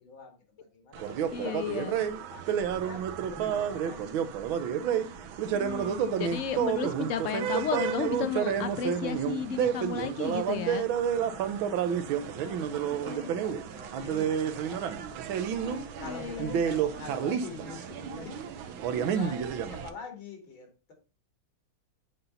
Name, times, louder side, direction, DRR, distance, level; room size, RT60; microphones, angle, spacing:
voice 1, 0.0-1.6 2.3-4.5 4.9-5.2 11.3-14.9 15.3-20.9, left 4 dB, 85° left, 3.3 m, -46 dB
sound 1, 0.9-19.9, right 8 dB, 80° right, 1.6 m, -30 dB
voice 2, 1.3-2.0 5.5-10.9 12.8-13.3 16.0-16.6, left 7 dB, 65° left, 0.8 m, -33 dB
8.6 x 3.9 x 5.6 m
omnidirectional pair, 2.2 m